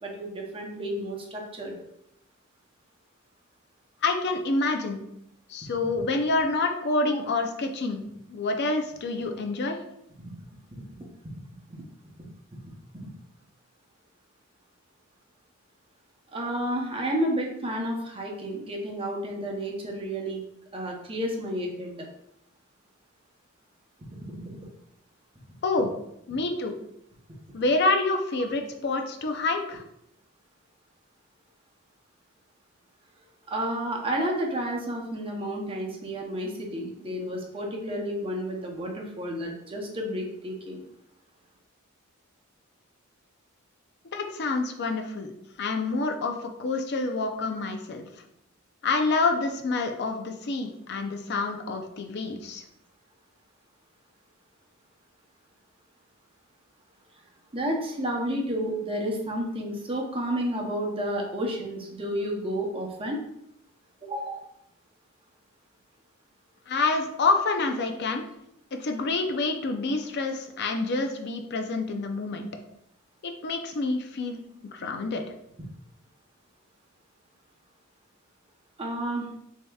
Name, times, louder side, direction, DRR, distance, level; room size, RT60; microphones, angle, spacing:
voice 1, 0.0-1.8 16.3-20.4 20.7-22.1 33.5-40.8 57.5-63.2 64.0-64.4 78.8-79.3, equal, 25° right, 0 dB, 0.7 m, -31 dB
voice 2, 4.0-5.0 5.5-8.0 8.3-9.8 25.6-25.9 26.3-26.8 27.5-29.8 44.1-45.3 45.6-48.0 48.8-52.6 66.7-68.2 68.7-72.5 73.2-74.4 74.7-75.2, left 3 dB, 55° left, 5 dB, 0.5 m, -27 dB
6.5 x 2.8 x 2.3 m, 0.77 s
head